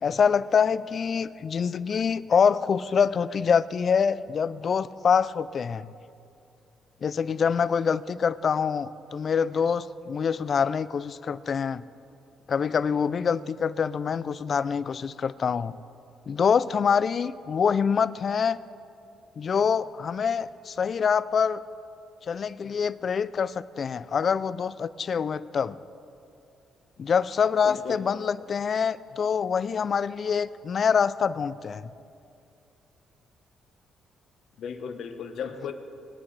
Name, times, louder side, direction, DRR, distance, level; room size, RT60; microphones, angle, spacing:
voice 1, 0.0-5.9 7.0-11.8 12.5-15.8 16.3-18.6 19.4-21.6 22.3-25.8 27.0-31.9, left 6 dB, 50° left, 16 dB, 0.3 m, -25 dB
voice 2, 27.6-28.0 34.6-35.7, left 7 dB, 70° left, 7 dB, 1.0 m, -35 dB
20.5 x 9.5 x 3.2 m, 2.6 s
cardioid pair, 90°, 0 cm